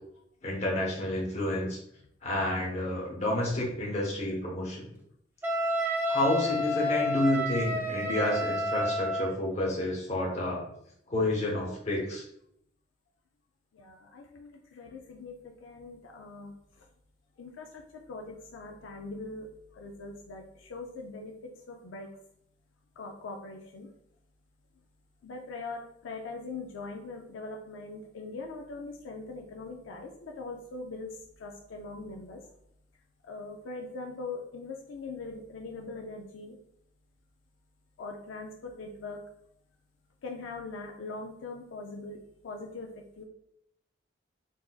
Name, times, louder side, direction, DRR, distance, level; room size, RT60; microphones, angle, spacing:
voice 1, 0.4-1.8 2.2-4.9 6.1-10.7 11.1-12.2, left 1 dB, 35° left, -3 dB, 0.9 m, -30 dB
Wind instrument woodwind instrument, 5.4-9.3, equal, 10° right, 0.3 m, -30 dB
voice 2, 13.7-16.9 17.4-22.1 23.0-23.9 25.2-32.5 33.2-36.6 38.0-39.2 40.2-43.2, left 3 dB, 80° left, 1 dB, 0.4 m, -42 dB
3.9 x 2.4 x 2.3 m, 0.73 s
head